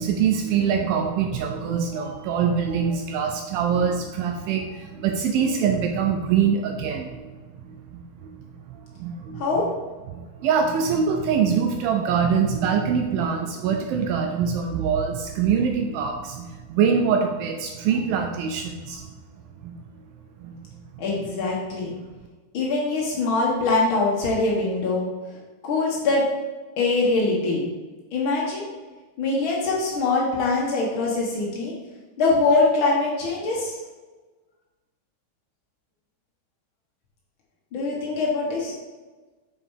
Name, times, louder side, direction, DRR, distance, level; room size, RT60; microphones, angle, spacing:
voice 1, 0.0-7.3 7.6-9.4 10.1-19.1 19.6-19.7 20.4-20.7 21.0-21.1, right 6 dB, 80° right, 4 dB, 2.2 m, -24 dB
voice 2, 9.3-9.7 21.0-21.9 22.5-25.1 25.6-26.2 26.8-27.6 28.1-28.7 29.2-31.7 32.2-33.8 37.7-38.7, left 3 dB, 90° left, -4 dB, 1.1 m, -23 dB
6.9 x 5.4 x 4.8 m, 1.3 s
omnidirectional pair, 4.6 m